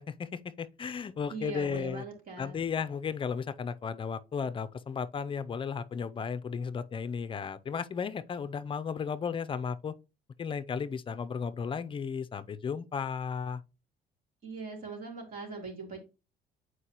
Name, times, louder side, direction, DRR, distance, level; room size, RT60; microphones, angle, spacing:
voice 1, 0.0-2.0 2.4-10.0 10.4-13.6, left 6 dB, 30° left, 0.5 m, -34 dB
voice 2, 1.3-2.6 14.4-16.0, right 4 dB, 55° right, 3.3 m, -40 dB
8.2 x 4.6 x 2.9 m
cardioid pair, 110°, 17 cm